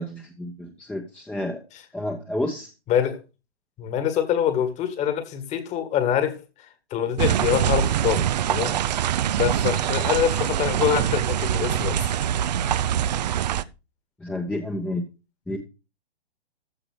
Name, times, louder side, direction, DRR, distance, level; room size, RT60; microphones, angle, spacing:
voice 1, 0.0-1.6 1.9-2.7 14.2-15.0 15.5-15.6, left 1 dB, 5° left, 1.1 m, -30 dB
voice 2, 2.9-3.2 3.8-8.8 9.4-12.0, left 9 dB, 20° left, 1.8 m, -25 dB
sound 1, 7.2-13.6, right 10 dB, 45° right, 0.7 m, -24 dB
14.5 x 5.0 x 6.4 m
figure-of-eight pair, 120°, 31 cm